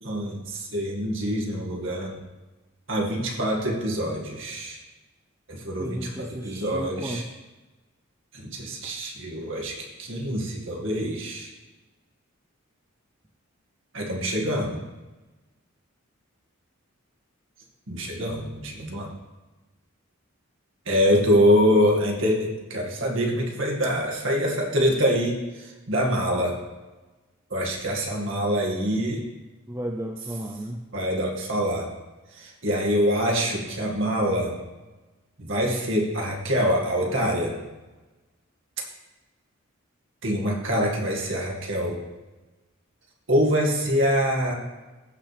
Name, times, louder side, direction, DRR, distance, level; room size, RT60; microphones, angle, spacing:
voice 1, 0.0-2.2 2.9-4.8 5.5-7.2 8.3-11.5 13.9-14.8 17.9-19.1 20.9-26.6 27.5-29.2 30.9-31.9 32.3-34.6 35.4-37.6 40.2-42.0 43.3-44.5, equal, 60° right, -1 dB, 2.1 m, -25 dB
voice 2, 5.8-7.3 21.1-21.4 29.7-30.8, right 1 dB, 15° right, 1 dB, 0.6 m, -33 dB
16.0 x 5.9 x 3.4 m, 1.2 s
head